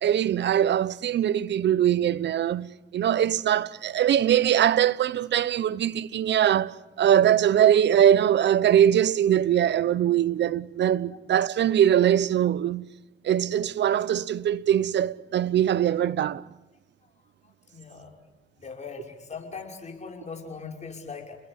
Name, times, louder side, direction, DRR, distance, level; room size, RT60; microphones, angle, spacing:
voice 1, 0.0-12.9 13.2-16.4, right 10 dB, 60° right, 0.9 m, -22 dB
voice 2, 17.7-18.1 18.6-21.4, left 5 dB, 35° left, 5.8 m, -40 dB
29.0 x 21.0 x 8.3 m
cardioid pair, 90°, 20 cm